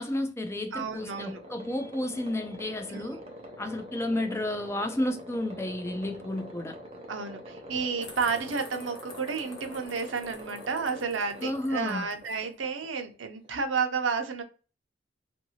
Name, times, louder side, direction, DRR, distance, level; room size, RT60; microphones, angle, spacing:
voice 1, 0.0-3.2 3.6-6.8 11.4-12.1, left 1 dB, 15° left, 0.4 m, -32 dB
voice 2, 0.7-1.4 2.9-3.1 7.1-14.4, right 5 dB, 80° right, 0.6 m, -31 dB
sound 1, 0.9-13.6, equal, 30° right, 0.7 m, -45 dB
sound 2, 7.7-8.8, equal, 50° left, 1.2 m, -56 dB
sound 3, 8.0-12.4, left 3 dB, 75° left, 1.1 m, -49 dB
2.7 x 2.6 x 2.7 m
head